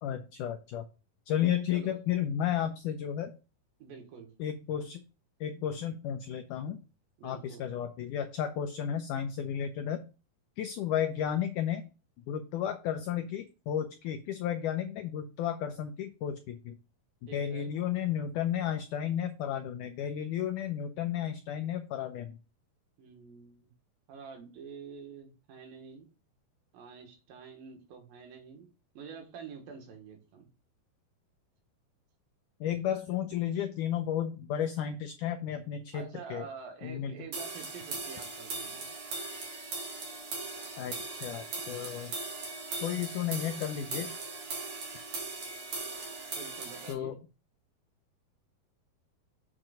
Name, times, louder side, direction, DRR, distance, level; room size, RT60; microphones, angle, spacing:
voice 1, 0.0-0.8 1.3-3.3 4.4-5.0 5.4-6.8 7.2-10.0 10.6-11.8 12.3-16.8 17.3-22.4 32.6-36.5 36.8-37.1 40.8-42.1 42.8-44.1 46.9-47.2, left 10 dB, 85° left, 7 dB, 1.8 m, -33 dB
voice 2, 3.8-4.3 7.2-7.7 17.3-17.7 23.0-23.7 24.1-26.1 26.7-28.7 28.9-30.5 35.9-38.9 46.4-47.2, right 6 dB, 70° right, 4 dB, 3.1 m, -47 dB
sound 1, 37.3-46.9, right 3 dB, 50° right, 3.1 m, -39 dB
7.4 x 4.5 x 5.0 m, 0.32 s
omnidirectional pair, 4.4 m